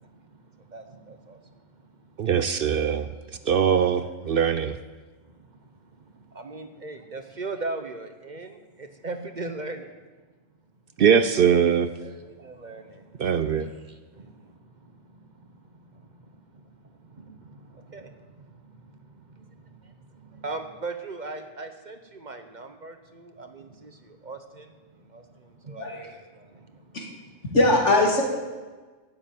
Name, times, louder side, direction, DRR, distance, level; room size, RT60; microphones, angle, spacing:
voice 1, 0.0-2.3 2.6-2.7 3.3-3.5 5.2-9.9 12.0-27.0, right 3 dB, 40° right, 7 dB, 1.0 m, -41 dB
voice 2, 2.2-3.1 3.5-4.8 11.0-11.9 13.2-13.7, right 7 dB, 60° right, 11 dB, 0.7 m, -21 dB
voice 3, 27.5-28.2, left 2 dB, 75° left, 0 dB, 2.7 m, -20 dB
12.0 x 8.0 x 9.0 m, 1.3 s
omnidirectional pair, 1.2 m